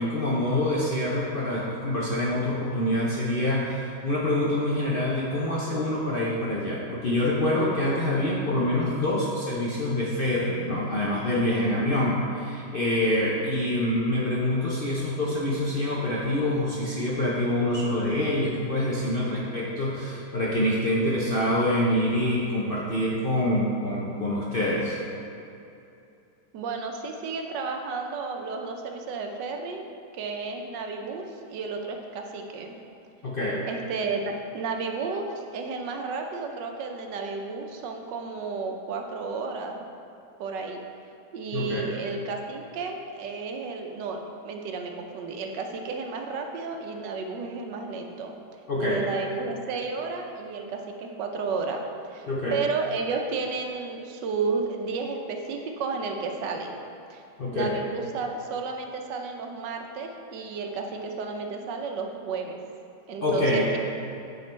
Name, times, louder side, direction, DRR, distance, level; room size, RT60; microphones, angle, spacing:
voice 1, 0.0-25.0 33.2-33.7 41.5-41.9 48.7-49.0 52.3-52.6 57.4-57.7 63.2-63.7, left 1 dB, 55° left, -5 dB, 0.6 m, -26 dB
voice 2, 26.5-29.8 30.1-32.8 33.7-35.3 35.5-39.8 40.4-40.8 41.3-48.3 48.8-51.8 52.1-56.8 57.1-57.2 57.5-62.6 63.1-63.8, right 4 dB, 85° right, 3 dB, 1.3 m, -32 dB
9.1 x 3.7 x 4.4 m, 2.7 s
omnidirectional pair, 1.9 m